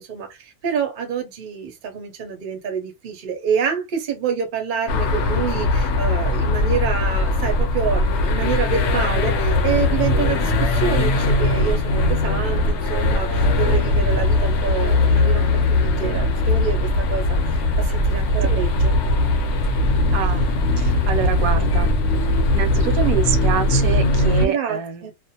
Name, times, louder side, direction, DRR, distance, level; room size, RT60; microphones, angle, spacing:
voice 1, 0.0-19.0 24.4-25.1, right 7 dB, 50° right, 0.7 m, -27 dB
sound 1, 4.9-24.5, left 2 dB, 60° left, 0.8 m, -19 dB
voice 2, 20.1-20.5 20.8-21.9 22.5-25.1, right 7 dB, 75° right, 1.0 m, -26 dB
2.4 x 2.1 x 2.7 m
omnidirectional pair, 1.5 m